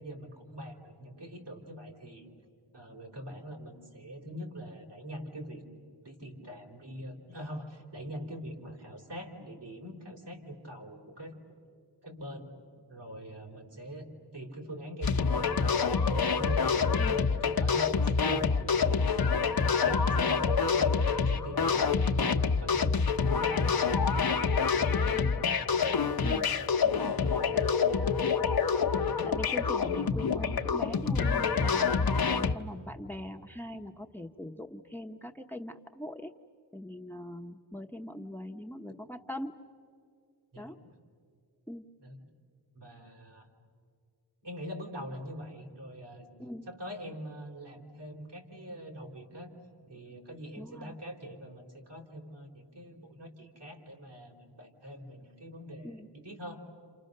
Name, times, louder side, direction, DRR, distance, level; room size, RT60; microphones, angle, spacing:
voice 1, 0.0-2.3 2.7-5.6 6.0-11.3 12.0-12.6 12.9-15.8 16.3-16.8 17.1-19.4 19.7-25.3 26.1-26.3 26.7-27.8 28.2-28.4 40.5-40.9 42.0-42.2 42.8-43.5 44.4-46.3 46.7-49.5 49.9-55.9 56.2-56.6, equal, 65° right, 0 dB, 3.9 m, -43 dB
sound 1, 15.0-32.5, left 5 dB, 55° left, 0.9 m, -27 dB
voice 2, 25.1-25.4 26.2-26.5 26.8-27.6 29.3-36.3 36.7-39.5 40.6-40.8 41.7-41.8 46.4-46.7 50.6-51.0 55.8-56.1, left 1 dB, 5° left, 6 dB, 0.9 m, -41 dB
30.0 x 28.0 x 6.6 m, 2.4 s
cardioid pair, 60°, 44 cm